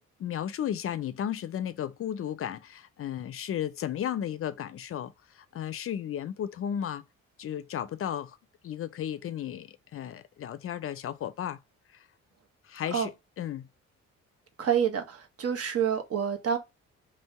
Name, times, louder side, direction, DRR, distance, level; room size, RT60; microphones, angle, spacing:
voice 1, 0.0-7.0 7.4-8.4 8.6-11.6 11.9-12.1 12.6-13.1 13.4-13.7, left 10 dB, 50° left, 0.4 m, -34 dB
voice 2, 14.6-16.6, right 8 dB, 50° right, 1.0 m, -28 dB
3.1 x 2.8 x 4.5 m
cardioid pair, 90°, 30 cm